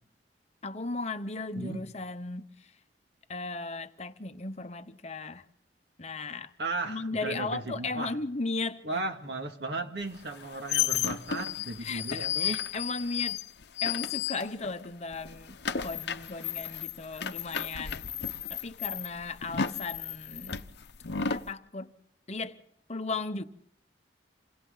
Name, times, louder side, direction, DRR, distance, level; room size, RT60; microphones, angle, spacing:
voice 1, 0.6-2.7 3.3-5.4 6.0-6.5 6.8-8.9 11.8-13.4 13.8-15.6 15.8-18.2 18.5-20.6 21.2-21.9 22.3-22.6 22.9-23.4, left 3 dB, 35° left, 0.9 m, -36 dB
voice 2, 1.5-1.8 6.6-8.2 8.8-12.6, right 2 dB, 65° right, 2.1 m, -35 dB
sound 1, 10.2-14.8 15.1-21.5, left 8 dB, 65° left, 0.8 m, -33 dB
28.0 x 25.5 x 4.0 m
head